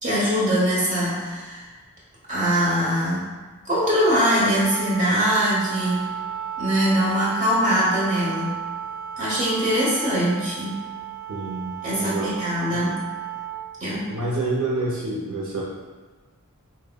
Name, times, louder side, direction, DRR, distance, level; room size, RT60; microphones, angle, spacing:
voice 1, 0.0-1.7 2.3-3.2 3.6-6.0 6.6-8.6 9.2-10.8 11.8-13.0 13.8-14.1, equal, 35° right, -8 dB, 1.2 m, -22 dB
Wind instrument woodwind instrument, 4.5-13.7, right 8 dB, 20° left, 0.4 m, -33 dB
voice 2, 11.3-12.3 12.7-12.8 14.1-15.6, right 2 dB, 70° right, -5 dB, 0.6 m, -28 dB
6.4 x 2.2 x 2.2 m, 1.3 s
head